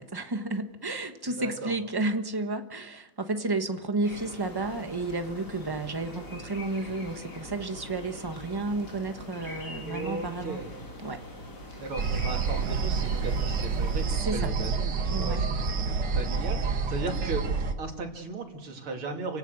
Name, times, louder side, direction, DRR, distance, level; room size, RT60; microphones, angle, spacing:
voice 1, 0.0-10.6 11.0-11.2 14.2-14.5 15.1-15.5, right 2 dB, 15° right, 6 dB, 1.1 m, -32 dB
voice 2, 1.3-1.8 9.8-10.7 11.8-17.5 17.8-19.4, right 3 dB, 90° right, 3 dB, 3.5 m, -37 dB
sound 1, 4.0-14.1, left 1 dB, 50° left, 3.5 m, -43 dB
sound 2, 12.0-17.7, right 5 dB, 55° right, 1.9 m, -28 dB
30.0 x 18.0 x 6.5 m, 1.0 s
omnidirectional pair, 2.3 m